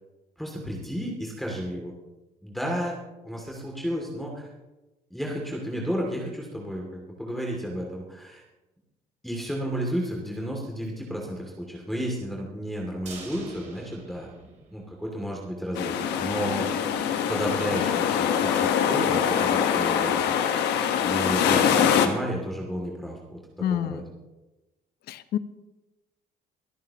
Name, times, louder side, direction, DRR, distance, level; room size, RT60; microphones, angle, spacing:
voice 1, 0.4-1.9 2.4-3.0 3.2-4.5 5.1-8.4 9.2-16.8 17.3-20.4 21.0-24.1, equal, ahead, -2 dB, 2.6 m, -32 dB
sound 1, 13.1-15.2 15.5-15.6 16.0-16.1, right 4 dB, 45° right, 3.9 m, -45 dB
sound 2, 15.7-22.1, left 8 dB, 85° left, 1.4 m, -23 dB
voice 2, 23.6-24.0 25.1-25.4, left 10 dB, 70° left, 13 dB, 0.8 m, -28 dB
24.0 x 9.2 x 3.0 m, 1.1 s
cardioid pair, 110°, 17 cm